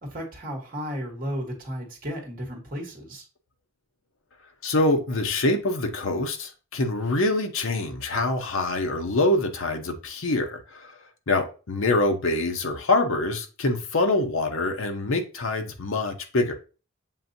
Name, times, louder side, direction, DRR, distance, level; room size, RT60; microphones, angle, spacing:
voice 1, 0.0-3.2, equal, 40° right, 1.4 m, -34 dB
voice 2, 4.6-10.9 11.3-16.5, left 2 dB, 60° left, 0.7 m, -25 dB
7.2 x 2.6 x 2.6 m
head